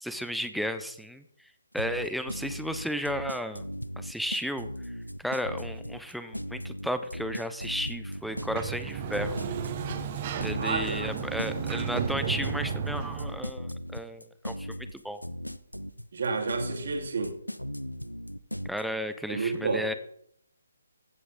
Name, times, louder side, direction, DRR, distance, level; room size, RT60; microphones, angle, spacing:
voice 1, 0.0-1.2 1.7-3.6 4.0-4.7 5.2-9.4 10.4-15.2 18.6-19.9, equal, ahead, 0.5 m, -33 dB
sound 1, 1.8-18.8, equal, 85° left, 0.7 m, -37 dB
Sliding door, 8.2-13.5, right 6 dB, 30° right, 1.0 m, -33 dB
voice 2, 10.5-11.1 16.1-17.3 19.3-19.8, right 4 dB, 50° right, 2.1 m, -30 dB
15.0 x 7.9 x 3.7 m
figure-of-eight pair, 140°, 0 cm